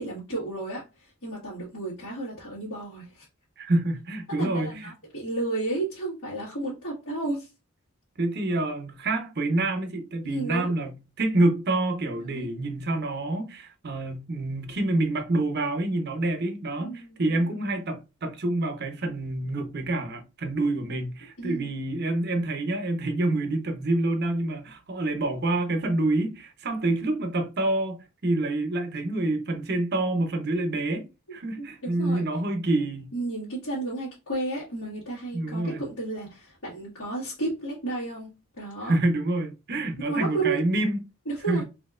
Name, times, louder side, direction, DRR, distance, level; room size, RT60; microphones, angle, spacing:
voice 1, 0.0-3.2 4.4-7.5 10.2-10.7 12.3-12.6 16.8-17.6 21.4-21.7 26.7-26.8 31.6-32.2 33.1-38.3 38.6-39.0 40.0-40.6 41.2-41.6, right 2 dB, 65° left, 1.6 m, -32 dB
voice 2, 3.6-4.9 8.2-33.1 35.3-35.9 38.8-41.0 41.5-41.6, right 2 dB, 50° right, 0.7 m, -27 dB
4.2 x 2.7 x 2.4 m
head